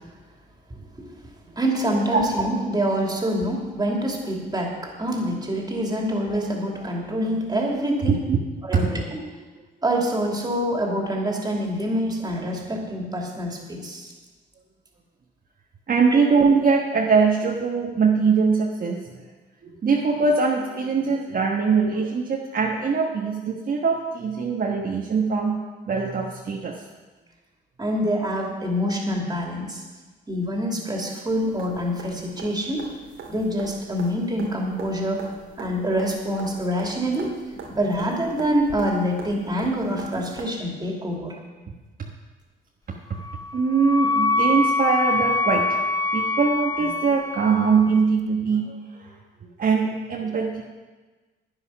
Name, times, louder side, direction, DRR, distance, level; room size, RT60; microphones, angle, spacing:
voice 1, 1.5-8.2 8.6-9.2 9.8-14.1 16.1-16.2 27.8-29.8 30.3-32.9 33.3-35.2 35.6-37.4 37.7-41.4, equal, 20° right, 0 dB, 2.9 m, -26 dB
voice 2, 8.0-8.4 15.9-19.0 19.6-25.6 25.9-26.8 42.9-43.0 43.5-45.8 46.1-49.1 49.6-50.6, right 5 dB, 45° right, -2 dB, 1.4 m, -22 dB
sound 1, 31.3-40.4 42.4-42.5, right 5 dB, 85° right, 2.1 m, -42 dB
Wind instrument woodwind instrument, 43.2-48.0, left 2 dB, 15° left, 0.9 m, -24 dB
11.0 x 9.6 x 5.9 m, 1.3 s
cardioid pair, 90°, 20 cm